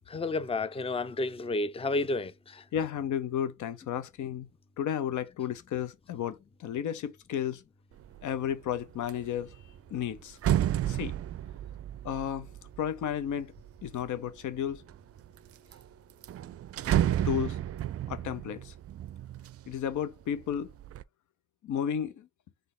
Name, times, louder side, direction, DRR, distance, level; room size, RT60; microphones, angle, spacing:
voice 1, 0.1-2.6, left 2 dB, 20° left, 0.5 m, -31 dB
voice 2, 2.7-4.5 4.8-7.6 8.2-9.6 9.9-10.4 10.9-11.2 12.0-12.5 12.8-13.5 13.8-14.8 17.2-17.6 18.1-18.7 19.7-20.7 21.6-22.3, left 9 dB, 70° left, 0.7 m, -33 dB
sound 1, 8.0-8.4 8.7-14.1 14.7-15.4 15.7-15.8 16.1-20.0 20.4-21.0, right 11 dB, 50° right, 0.4 m, -32 dB
3.8 x 3.3 x 3.7 m
supercardioid pair, 45°, 31 cm